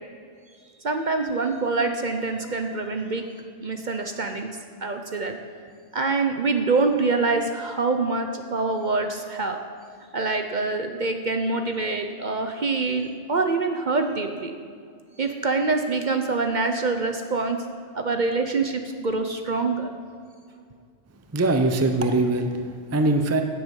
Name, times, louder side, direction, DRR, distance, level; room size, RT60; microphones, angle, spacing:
voice 1, 0.8-3.2 3.6-4.5 4.8-5.4 5.9-9.6 10.1-14.5 15.2-17.6 17.9-19.9, right 3 dB, 45° right, 5 dB, 0.8 m, -25 dB
voice 2, 21.3-23.4, right 2 dB, 15° right, 6 dB, 0.6 m, -22 dB
16.0 x 8.0 x 5.4 m, 2.2 s
omnidirectional pair, 1.2 m